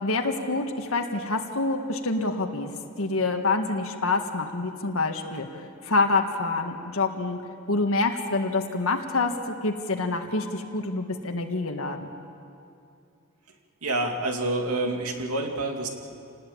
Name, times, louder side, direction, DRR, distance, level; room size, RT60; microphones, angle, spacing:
voice 1, 0.0-2.7 3.0-7.4 7.7-9.3 9.6-12.1, left 3 dB, 70° left, 3 dB, 1.8 m, -26 dB
voice 2, 13.8-15.9, right 2 dB, 85° right, 2 dB, 2.8 m, -27 dB
27.5 x 19.5 x 8.7 m, 2.5 s
head